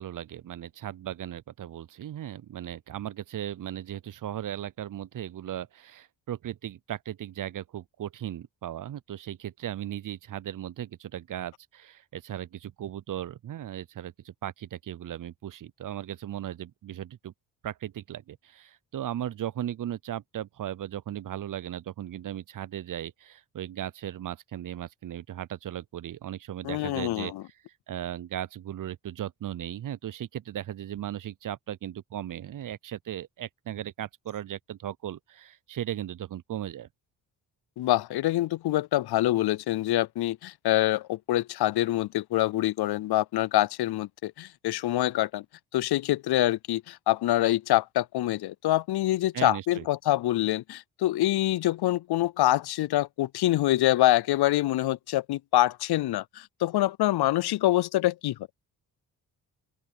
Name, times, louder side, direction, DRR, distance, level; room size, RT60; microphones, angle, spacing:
voice 1, 0.0-17.3 17.6-27.3 27.9-36.9 49.3-49.9, right 11 dB, 45° right, 0.6 m, -37 dB
voice 2, 26.6-27.4 37.8-45.4 45.7-58.4, left 15 dB, 60° left, 0.5 m, -25 dB
open air
cardioid pair, 65°, 44 cm